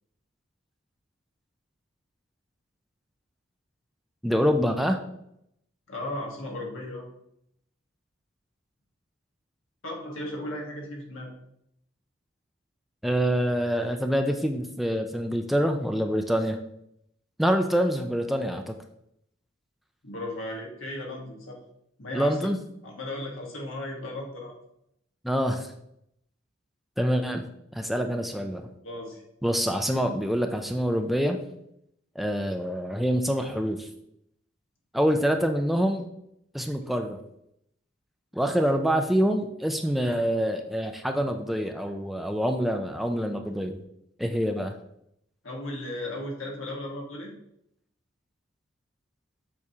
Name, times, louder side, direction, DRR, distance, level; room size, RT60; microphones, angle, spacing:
voice 1, 4.2-5.0 13.0-16.6 17.4-18.7 22.1-22.6 25.2-25.7 27.0-27.4 27.7-28.7 29.4-31.4 32.2-33.9 34.9-36.1 36.5-37.2 38.3-43.8 44.2-44.7, equal, ahead, 4 dB, 0.4 m, -26 dB
voice 2, 5.9-7.1 9.8-11.3 20.0-21.6 22.0-22.5 22.8-24.6 28.1-28.2 28.8-29.2 45.4-47.3, left 1 dB, 85° left, 0 dB, 1.5 m, -36 dB
7.1 x 4.7 x 2.8 m, 0.77 s
head